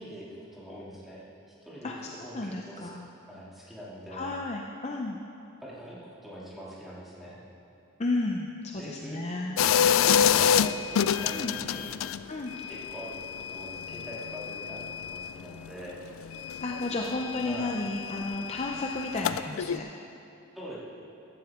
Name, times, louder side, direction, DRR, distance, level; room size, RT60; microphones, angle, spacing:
voice 1, 0.0-2.9 3.3-4.3 5.6-7.4 8.7-9.2 10.0-12.0 12.7-16.0 16.8-17.8 20.5-20.8, equal, ahead, -8 dB, 2.5 m, -44 dB
voice 2, 1.8-3.1 4.1-5.2 8.0-9.6 11.3-11.5 12.3-12.5 16.6-19.9, left 2 dB, 30° left, 0 dB, 0.6 m, -33 dB
sound 1, 9.6-12.2 12.5-15.7 16.0-19.8, left 8 dB, 75° left, 0.3 m, -28 dB
14.5 x 11.5 x 3.6 m, 3.0 s
head